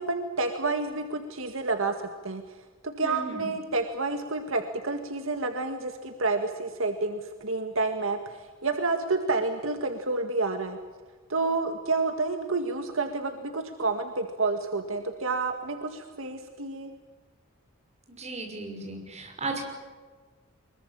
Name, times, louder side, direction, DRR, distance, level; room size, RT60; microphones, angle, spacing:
voice 1, 0.0-1.9 2.2-2.4 2.8-10.8 11.3-16.9, right 3 dB, 70° right, 5 dB, 2.0 m, -29 dB
voice 2, 3.0-3.5 18.1-19.6, right 3 dB, 30° right, 2 dB, 6.1 m, -36 dB
24.5 x 22.5 x 8.8 m, 1.4 s
head